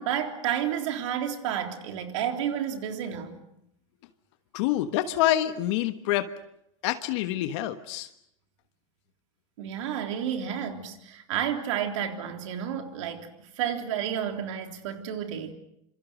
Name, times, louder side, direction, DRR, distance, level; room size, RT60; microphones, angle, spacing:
voice 1, 0.0-3.4 9.6-13.3 13.6-15.5, right 9 dB, 70° right, 5 dB, 3.6 m, -31 dB
voice 2, 4.5-6.3 6.8-8.1, left 13 dB, 65° left, 9 dB, 1.4 m, -26 dB
26.5 x 25.5 x 6.3 m, 0.78 s
hypercardioid pair, 105°, 16 cm